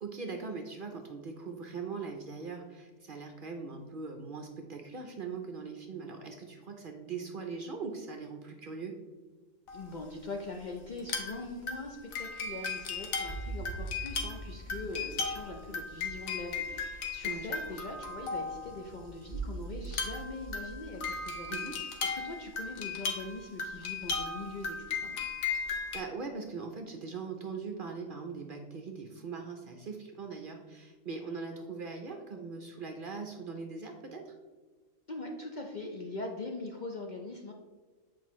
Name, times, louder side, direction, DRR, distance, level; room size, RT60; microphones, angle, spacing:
voice 1, 0.0-8.9 17.2-17.8 21.5-21.8 25.7-34.3, right 4 dB, 55° right, 4 dB, 0.7 m, -41 dB
sound 1, 9.7-9.9 11.0-11.4 11.7-18.9 19.8-26.0, left 5 dB, 90° left, 1.3 m, -36 dB
voice 2, 9.7-25.2 35.1-37.5, left 2 dB, 50° left, 1 dB, 0.6 m, -42 dB
sound 2, 12.8-21.2, right 3 dB, 20° right, 1.9 m, -44 dB
7.6 x 4.6 x 3.1 m, 1.4 s
omnidirectional pair, 1.4 m